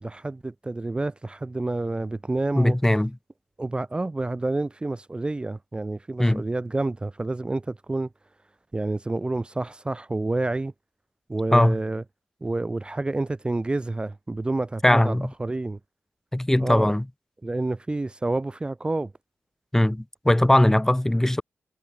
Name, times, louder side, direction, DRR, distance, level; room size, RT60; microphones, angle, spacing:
voice 1, 0.0-2.8 3.6-8.1 8.7-10.7 11.3-12.0 12.4-15.8 16.6-16.9 17.4-19.1, right 2 dB, 20° right, 0.3 m, -29 dB
voice 2, 2.5-3.2 6.2-6.5 11.5-11.8 14.8-15.3 16.3-17.0 19.7-21.4, left 1 dB, 10° left, 0.7 m, -20 dB
cardioid pair, 65°, 5 cm